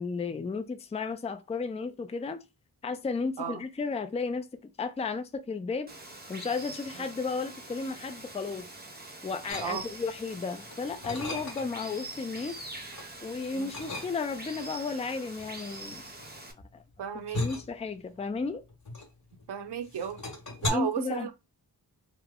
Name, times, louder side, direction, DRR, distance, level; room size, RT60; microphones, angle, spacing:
voice 1, 0.0-2.4 2.8-5.9 6.3-8.6 9.2-12.5 13.2-16.0 16.7-16.8 17.4-18.6 20.7-21.3, left 4 dB, 15° left, 0.3 m, -33 dB
Water, 5.9-16.5, right 2 dB, 25° right, 0.8 m, -44 dB
sound 1, 9.5-10.2 10.6-11.9 12.3-13.1 13.7-14.5 15.4-19.5 19.8-20.7, left 2 dB, 45° left, 1.1 m, -37 dB
voice 2, 17.0-17.4 19.5-20.2 20.6-21.3, right 8 dB, 70° right, 0.6 m, -33 dB
3.1 x 2.0 x 3.5 m
wide cardioid pair, 70°, 42 cm